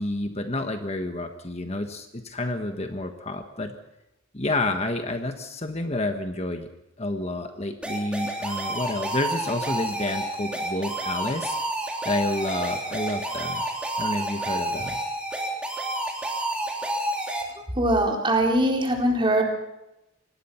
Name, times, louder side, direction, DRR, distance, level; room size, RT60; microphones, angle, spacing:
voice 1, 0.0-3.7 4.3-6.7 7.0-11.6 12.0-13.6 14.0-15.0, left 2 dB, 30° left, 6 dB, 1.4 m, -29 dB
sound 1, 7.8-17.4, right 1 dB, 5° right, 3.4 m, -30 dB
voice 2, 17.7-19.4, right 1 dB, 25° right, 1 dB, 4.3 m, -21 dB
25.0 x 19.0 x 5.8 m, 0.90 s
head